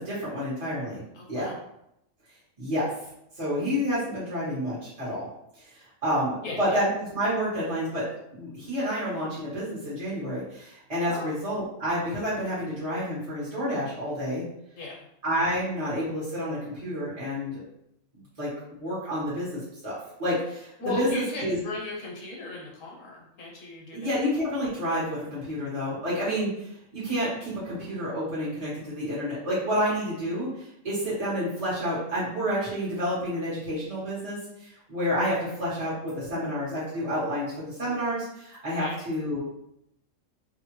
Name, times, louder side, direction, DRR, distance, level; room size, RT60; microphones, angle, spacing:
voice 1, 0.0-1.0 1.3-1.5 2.6-2.9 3.4-5.3 6.0-8.1 8.3-14.4 15.2-17.6 18.4-21.6 23.9-26.7 26.9-30.5 30.8-39.4, equal, 30° right, -9 dB, 1.1 m, -29 dB
voice 2, 1.1-1.6 6.4-6.8 11.1-11.3 14.8-15.1 20.8-24.2 38.8-39.0, left 3 dB, 75° left, -2 dB, 1.1 m, -37 dB
2.7 x 2.4 x 3.0 m, 0.79 s
omnidirectional pair, 1.4 m